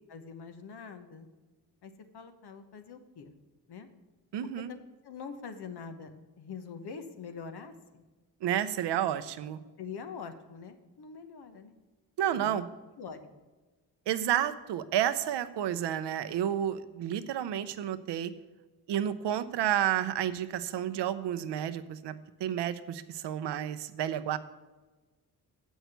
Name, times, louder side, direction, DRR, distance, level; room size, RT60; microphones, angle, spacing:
voice 1, 0.1-1.3 1.8-3.3 3.7-3.9 4.7-4.8 5.0-6.1 6.4-8.0 9.8-11.8 12.3-12.6 13.0-13.3, left 5 dB, 70° left, 8 dB, 1.3 m, -44 dB
voice 2, 4.3-4.7 8.4-9.6 12.2-12.6 14.1-18.3 18.9-22.1 22.4-24.4, right 10 dB, 85° right, 13 dB, 0.7 m, -31 dB
7.8 x 6.3 x 8.0 m, 1.2 s
cardioid pair, 60°, 40 cm